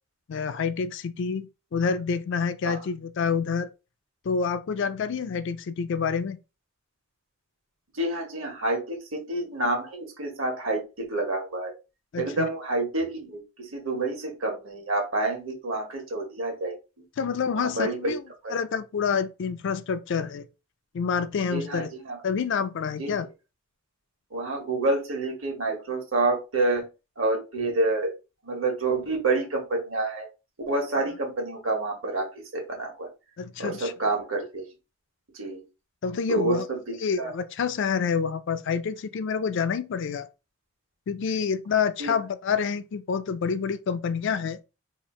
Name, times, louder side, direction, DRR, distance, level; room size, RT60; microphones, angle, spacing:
voice 1, 0.3-3.7 4.2-6.4 12.1-12.5 17.2-18.2 18.5-20.5 20.9-21.9 22.2-23.3 33.4-33.9 36.0-36.7 37.0-40.3 41.1-44.6, left 6 dB, 60° left, 0.4 m, -28 dB
voice 2, 7.9-11.7 12.2-17.0 17.6-18.2 18.4-18.5 21.5-22.2 23.0-23.1 24.3-26.9 27.2-28.1 28.4-30.3 30.6-33.1 33.6-34.6 35.3-35.6 36.3-36.8 37.2-37.3 42.0-42.1, right 2 dB, 70° right, 1.2 m, -28 dB
2.9 x 2.4 x 4.3 m
head